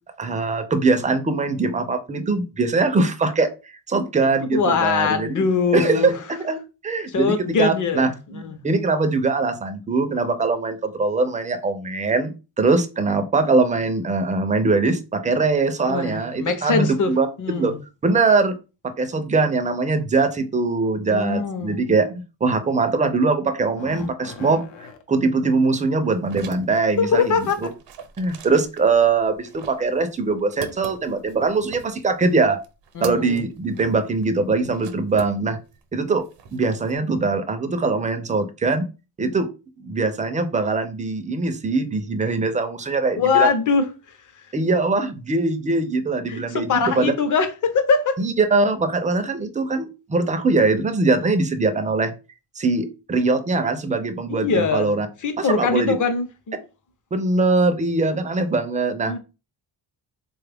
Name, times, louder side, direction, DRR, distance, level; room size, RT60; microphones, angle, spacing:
voice 1, 0.2-5.4 5.7-17.3 17.6-17.7 18.0-18.5 18.8-24.6 25.1-27.5 28.2-32.6 33.0-35.6 35.9-36.2 36.5-38.9 39.2-39.5 39.8-43.5 44.5-46.7 46.9-47.1 48.2-52.1 52.6-55.1 55.4-56.0 57.1-59.1, right 3 dB, 20° right, 0.3 m, -22 dB
voice 2, 4.5-6.1 7.1-8.6 15.9-17.8 21.1-21.8 27.0-27.7 32.9-33.4 43.1-43.9 46.3-48.2 54.3-54.9 55.2-56.6 59.1-59.2, left 5 dB, 45° left, 0.7 m, -22 dB
sound 1, 23.5-25.0 27.2-27.3 28.2-28.7 29.0-29.2 29.9-30.3 30.7-30.8 31.2-31.3, left 5 dB, 85° left, 0.7 m, -40 dB
sound 2, 26.1-35.8 36.1-37.0, right 6 dB, 90° right, 0.7 m, -41 dB
3.8 x 2.3 x 3.3 m
wide cardioid pair, 150°, 42 cm